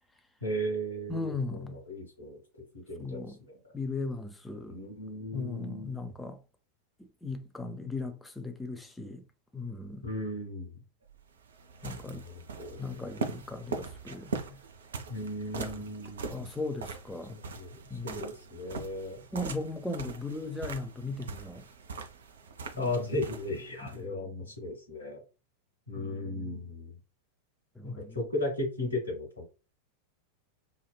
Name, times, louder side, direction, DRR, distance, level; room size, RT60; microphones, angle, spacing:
voice 1, 0.4-1.6 1.9-2.4 2.7-3.2 3.5-3.7 4.7-5.9 10.0-10.7 12.2-13.0 15.1-16.4 17.3-19.2 22.8-25.2 25.9-26.9 27.8-29.4, left 1 dB, 75° left, 0.9 m, -36 dB
voice 2, 1.1-1.8 3.0-3.4 3.7-4.8 5.3-6.4 7.0-9.2 9.5-10.1 11.8-12.2 12.8-14.6 15.6-15.9 16.3-17.4 17.9-18.3 19.3-21.6 23.8-24.2 25.9-26.6 27.8-28.2, left 3 dB, 5° left, 0.4 m, -38 dB
sound 1, 11.1-24.0, right 4 dB, 65° right, 0.4 m, -41 dB
3.1 x 2.1 x 2.2 m
figure-of-eight pair, 90°, 0 cm